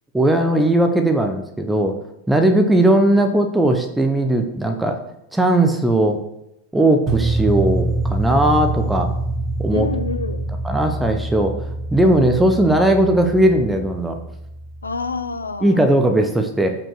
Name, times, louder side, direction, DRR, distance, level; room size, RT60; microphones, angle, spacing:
voice 1, 0.1-1.9 2.3-5.0 5.3-6.2 6.7-9.1 9.6-9.9 10.6-11.5 11.9-14.2 15.6-16.8, right 1 dB, 5° right, 5 dB, 0.8 m, -17 dB
sound 1, 7.1-15.2, right 2 dB, 30° right, 1.4 m, -25 dB
voice 2, 9.7-10.5 12.0-12.2 14.8-15.8, left 4 dB, 75° left, 9 dB, 0.7 m, -28 dB
7.3 x 5.3 x 6.2 m, 0.84 s
figure-of-eight pair, 90°, 0 cm